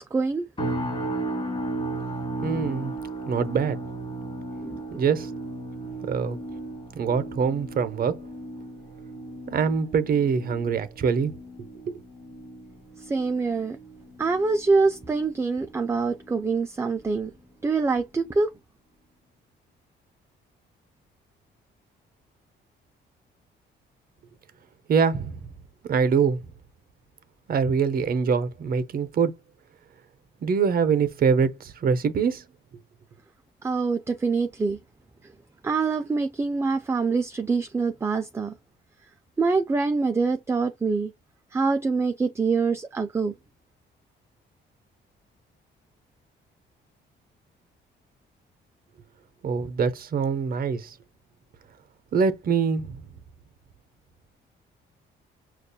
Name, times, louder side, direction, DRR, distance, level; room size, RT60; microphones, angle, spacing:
voice 1, 0.1-0.5 4.6-5.0 13.0-13.8 14.2-17.3 17.6-18.5 33.6-34.8 35.6-38.6 39.4-41.1 41.5-43.3, right 4 dB, 15° right, 0.3 m, -25 dB
sound 1, 0.6-15.8 16.1-16.5 17.0-17.2, right 2 dB, 25° left, 1.0 m, -35 dB
voice 2, 2.4-3.0 3.3-3.8 5.0-5.3 6.1-6.4 6.9-8.2 9.5-11.3 11.9-12.0 24.9-25.4 25.9-26.4 27.5-29.3 30.4-32.4 49.4-50.9 52.1-53.0, right 6 dB, 50° right, 0.6 m, -24 dB
5.2 x 2.3 x 2.2 m
cardioid pair, 90°, 20 cm